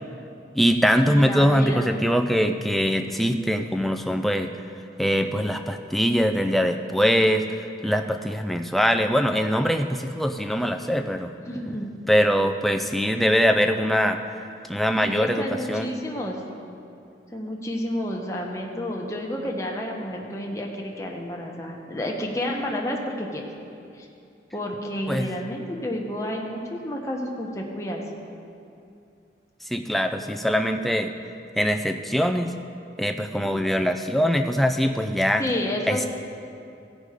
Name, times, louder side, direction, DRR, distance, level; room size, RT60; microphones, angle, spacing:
voice 1, 0.5-4.5 5.0-7.4 7.8-11.3 12.1-14.2 14.7-15.9 25.1-25.3 29.6-31.1 31.6-32.5 33.0-35.4 35.9-36.1, equal, ahead, 6 dB, 0.3 m, -22 dB
voice 2, 1.1-1.8 11.4-11.9 15.0-16.3 17.3-23.4 24.0-24.1 24.5-28.0 35.4-36.1, left 1 dB, 15° left, -1 dB, 0.9 m, -30 dB
15.5 x 5.2 x 4.9 m, 2.6 s
head